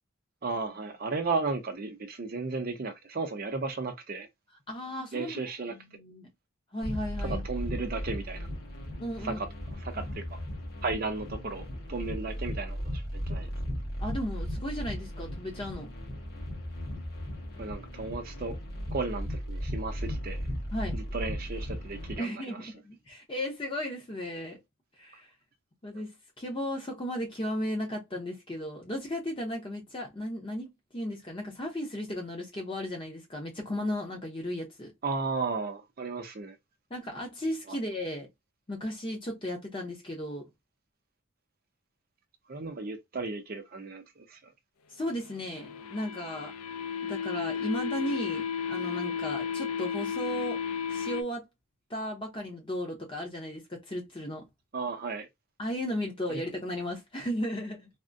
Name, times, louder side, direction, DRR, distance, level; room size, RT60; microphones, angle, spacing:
voice 1, 0.4-4.3 5.1-5.7 7.2-8.5 9.2-9.5 9.8-10.4 10.8-13.5 17.6-18.6 18.9-20.4 20.9-22.7 35.0-36.6 37.7-37.8 42.5-44.5 54.7-55.3 56.3-56.4, right 3 dB, 45° right, 0.5 m, -34 dB
voice 2, 4.7-5.4 5.7-6.3 6.7-7.5 9.0-9.4 14.0-15.9 20.7-21.0 22.2-24.6 25.0-25.3 25.8-34.9 36.9-38.3 38.7-40.5 44.9-46.5 47.0-50.6 50.9-51.5 51.9-54.4 55.6-57.9, equal, 25° left, 0.7 m, -35 dB
sound 1, 6.8-22.2, equal, 50° left, 1.3 m, -36 dB
sound 2, 45.2-51.2, left 7 dB, 85° left, 0.4 m, -33 dB
3.4 x 2.0 x 2.5 m
head